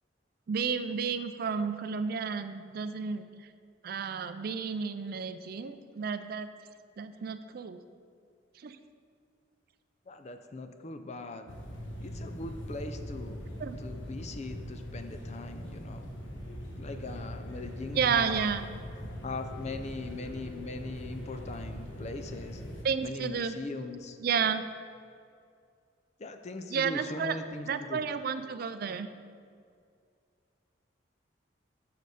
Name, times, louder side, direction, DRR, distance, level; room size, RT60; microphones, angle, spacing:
voice 1, 0.5-3.2 3.8-6.5 7.0-7.8 8.6-8.8 13.6-13.8 17.9-18.7 22.8-23.6 24.2-24.6 26.7-27.4 27.7-29.1, right 6 dB, 55° right, 11 dB, 0.4 m, -31 dB
voice 2, 10.1-11.4 12.0-13.5 13.8-16.0 16.8-18.5 19.2-22.6 23.0-24.2 26.2-28.0, left 2 dB, 35° left, 8 dB, 0.5 m, -40 dB
sound 1, 11.5-22.8, equal, 80° left, 1.2 m, -41 dB
6.7 x 6.6 x 4.9 m, 2.3 s
head